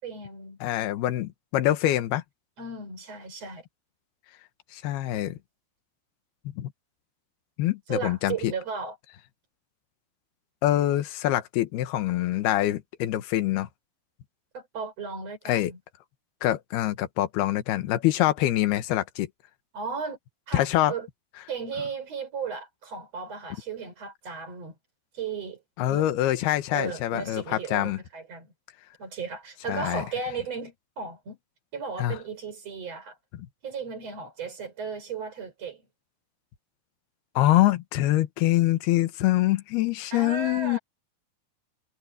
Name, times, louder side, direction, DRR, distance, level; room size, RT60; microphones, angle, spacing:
voice 1, 0.0-0.6 2.6-3.7 7.9-9.0 14.5-15.8 19.7-20.2 20.5-21.1 21.5-24.7 25.1-25.6 25.9-26.1 26.7-28.5 29.0-31.4 31.7-33.2 33.6-35.8 40.1-40.8, right 5 dB, 35° right, 5.7 m, -35 dB
voice 2, 0.6-2.2 4.7-5.4 6.6-6.7 7.6-8.5 10.6-13.7 15.5-15.7 16.4-19.3 20.5-20.9 25.8-28.0 29.7-30.0 32.0-32.2 37.4-40.8, left 14 dB, 70° left, 2.8 m, -25 dB
omnidirectional pair, 5.6 m